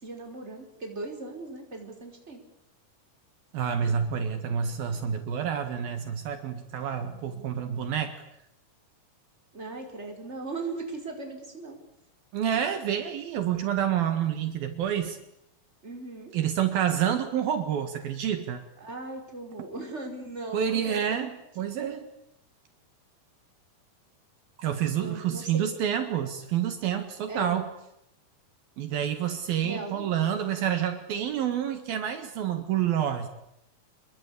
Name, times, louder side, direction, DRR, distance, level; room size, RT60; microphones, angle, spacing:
voice 1, 0.0-2.4 9.5-11.8 15.8-16.3 18.8-21.3 25.0-26.1 27.3-27.6 29.6-30.1, right 3 dB, 15° right, 3 dB, 5.1 m, -38 dB
voice 2, 3.5-8.2 12.3-15.2 16.3-18.6 20.5-22.1 24.6-27.7 28.8-33.3, right 9 dB, 70° right, 7 dB, 3.6 m, -28 dB
27.5 x 23.0 x 8.5 m, 0.79 s
omnidirectional pair, 4.5 m